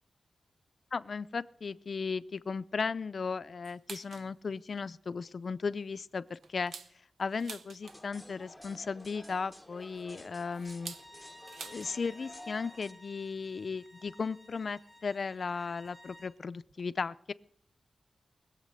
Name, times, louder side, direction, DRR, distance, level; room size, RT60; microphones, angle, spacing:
voice 1, 0.9-6.7 7.2-10.9 11.6-17.3, left 5 dB, 55° left, 14 dB, 0.5 m, -36 dB
sound 1, 3.6-4.3 4.7-4.8 5.2-5.5 6.0-8.2 9.4-12.0 12.3-12.4 12.7-13.0 13.9-14.0 14.9-15.0 15.9-16.0 16.4-16.5 16.6-16.8, right 5 dB, 85° right, 0.8 m, -49 dB
sound 2, 7.8-12.9, left 1 dB, 5° left, 1.0 m, -51 dB
Bowed string instrument, 10.7-16.3, left 1 dB, 15° right, 3.6 m, -55 dB
20.5 x 7.4 x 7.7 m, 0.67 s
wide cardioid pair, 110°, 0 cm